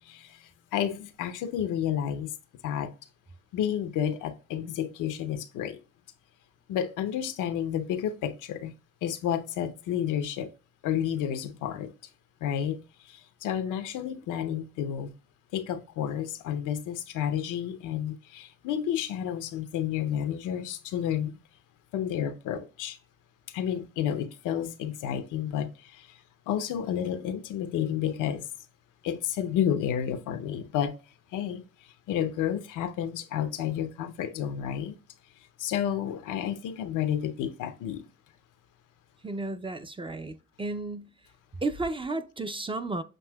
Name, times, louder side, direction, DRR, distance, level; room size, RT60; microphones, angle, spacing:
voice 1, 0.1-0.4 0.7-2.3 2.6-2.9 3.5-5.8 6.7-8.7 9.0-10.5 10.8-11.9 12.4-15.1 15.5-21.4 21.9-23.0 23.5-26.1 26.5-28.4 29.0-31.0 31.3-31.6 32.1-34.9 35.6-38.0, left 9 dB, 90° left, 0.7 m, -31 dB
voice 2, 39.2-41.1 41.6-43.0, right 2 dB, 15° right, 0.5 m, -33 dB
7.5 x 2.7 x 2.2 m
cardioid pair, 90°, 30 cm